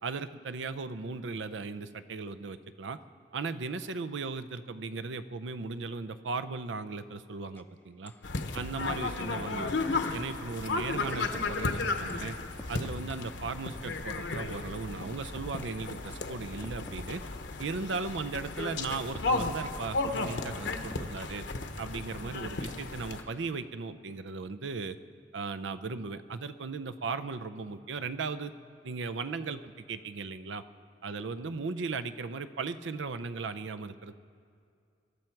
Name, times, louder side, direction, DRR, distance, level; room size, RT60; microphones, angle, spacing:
voice 1, 0.0-3.0 3.3-8.1 8.5-12.4 12.7-17.2 17.6-21.5 21.8-25.0 25.3-28.5 28.8-29.6 29.9-30.6 31.0-34.1, right 4 dB, 90° right, 11 dB, 0.6 m, -37 dB
sound 1, 7.6-7.7 8.1-8.3 8.6-9.3 10.1-10.3 11.1-11.6 12.1-13.5 14.1-14.3 15.1-15.7 16.1-16.3 16.6-17.5 18.1-18.4 19.1-19.7 20.2-21.5 22.2-22.3 23.2-23.6, left 1 dB, 10° left, 0.5 m, -48 dB
sound 2, 8.2-23.2, left 3 dB, 75° left, 0.9 m, -34 dB
23.5 x 12.0 x 4.6 m, 2.4 s
head